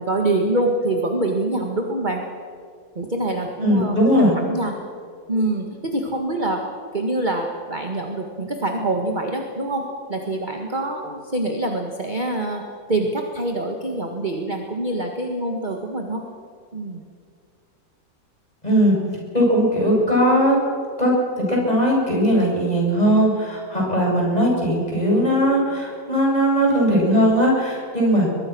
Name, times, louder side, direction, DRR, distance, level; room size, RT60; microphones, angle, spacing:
voice 1, 0.0-2.2 3.0-4.8 5.3-6.6 6.9-16.3 16.7-17.0, right 2 dB, 25° right, 2 dB, 1.9 m, -25 dB
voice 2, 3.6-4.3 18.6-19.0 19.3-20.5 21.0-21.1 21.4-28.3, equal, 20° left, -3 dB, 7.8 m, -19 dB
23.0 x 22.5 x 6.3 m, 2.1 s
omnidirectional pair, 2.0 m